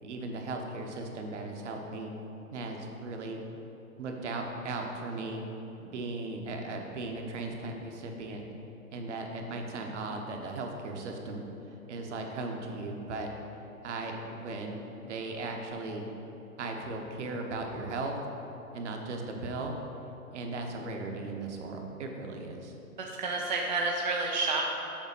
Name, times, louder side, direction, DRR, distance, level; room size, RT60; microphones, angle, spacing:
voice 1, 0.0-2.1 2.5-3.4 4.0-5.4 5.8-8.4 8.9-11.4 11.9-13.3 13.8-16.1 16.6-18.1 18.7-19.7 20.3-22.7, right 3 dB, 50° right, 2 dB, 1.1 m, -37 dB
voice 2, 23.0-24.6, right 3 dB, 35° right, 0 dB, 0.4 m, -30 dB
7.1 x 4.9 x 5.5 m, 3.0 s
hypercardioid pair, 135°, 44 cm